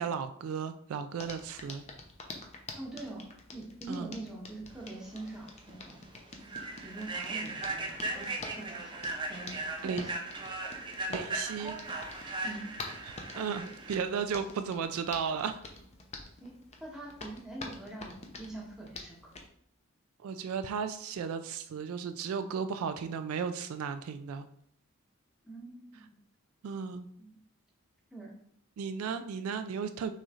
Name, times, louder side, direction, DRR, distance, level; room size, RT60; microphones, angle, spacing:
voice 1, 0.0-1.8 3.9-4.1 9.8-10.0 11.1-11.8 13.0-15.6 20.2-24.5 26.6-27.1 28.8-30.1, right 6 dB, 75° right, 9 dB, 0.3 m, -35 dB
Hands, 1.2-19.5, left 3 dB, 30° left, 0.6 m, -47 dB
voice 2, 2.8-3.3 3.5-6.0 6.3-9.0 9.3-10.4 12.4-12.7 13.3-13.7 16.4-16.5 16.8-19.3 25.4-26.2 27.2-27.4 28.1-28.3, right 2 dB, ahead, -3 dB, 1.0 m, -44 dB
Human voice / Train, 5.1-5.3 5.7-5.9 6.4-14.0, right 2 dB, 20° right, 0.5 m, -38 dB
6.2 x 3.1 x 2.5 m, 0.65 s
head